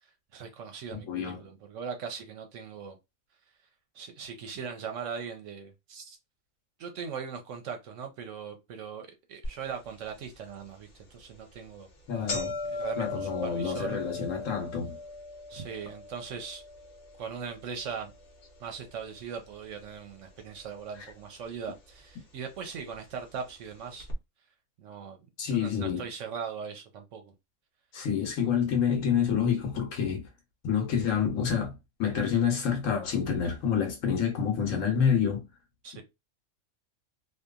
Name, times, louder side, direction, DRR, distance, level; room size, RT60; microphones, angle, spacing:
voice 1, 0.0-3.0 3.9-6.2 6.8-11.9 12.7-14.1 15.5-16.6 17.2-18.1 18.6-24.1 24.8-27.3 35.8-36.0, right 6 dB, 70° right, 0.8 m, -40 dB
voice 2, 0.9-1.4 12.1-12.6 13.0-15.0 25.4-26.1 27.9-30.3 30.6-35.4, left 7 dB, 65° left, 1.2 m, -28 dB
sound 1, 9.4-9.5 10.1-10.2 11.0-11.2 11.5-11.6 11.9-20.1 20.4-21.1 21.9-22.0 23.0-23.1 23.3-23.4 24.0-24.1, left 2 dB, 50° left, 0.9 m, -39 dB
2.8 x 2.3 x 2.3 m
omnidirectional pair, 1.5 m